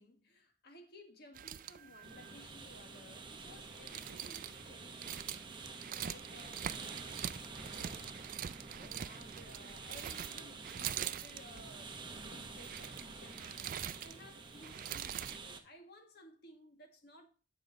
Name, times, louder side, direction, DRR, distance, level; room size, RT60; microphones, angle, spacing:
voice 1, 0.0-5.4 5.9-17.3, left 1 dB, 60° left, 1.7 m, -58 dB
sound 1, 1.3-15.4, right 10 dB, 45° right, 0.4 m, -44 dB
sound 2, 2.0-15.6, right 3 dB, 25° right, 1.0 m, -49 dB
9.3 x 5.4 x 4.0 m
head